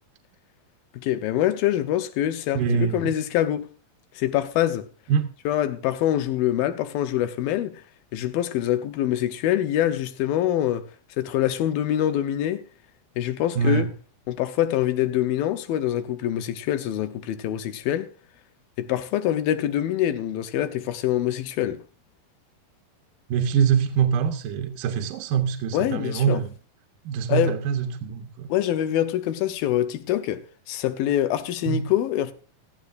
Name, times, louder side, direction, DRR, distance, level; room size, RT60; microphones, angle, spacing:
voice 1, 0.9-3.7 4.2-4.9 5.5-7.8 8.1-10.8 11.2-12.6 13.2-13.9 14.3-18.1 18.8-21.8 25.7-26.4 27.3-27.6 28.5-32.3, left 12 dB, 80° left, 2.7 m, -25 dB
voice 2, 2.5-3.2 5.1-5.3 13.6-13.9 23.3-26.5 27.1-28.5 31.7-31.9, right 7 dB, 70° right, 2.5 m, -24 dB
16.5 x 13.5 x 2.6 m
omnidirectional pair, 4.2 m